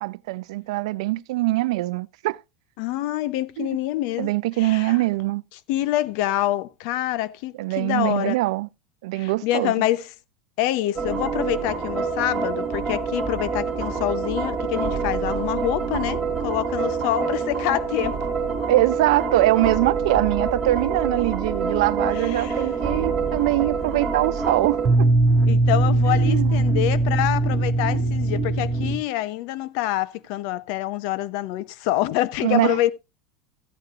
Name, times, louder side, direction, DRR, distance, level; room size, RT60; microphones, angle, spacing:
voice 1, 0.0-2.4 3.6-3.7 4.2-5.4 7.6-8.7 9.0-9.7 18.7-25.1 26.1-26.6 32.4-32.8, right 18 dB, 70° right, 0.5 m, -23 dB
voice 2, 2.8-4.3 4.6-5.0 5.7-8.4 9.1-10.1 10.6-18.2 22.2-22.6 25.5-32.9, left 14 dB, 55° left, 0.8 m, -26 dB
sound 1, 10.9-29.0, right 3 dB, 15° right, 2.8 m, -24 dB
14.0 x 9.7 x 2.5 m
supercardioid pair, 155°, 3 cm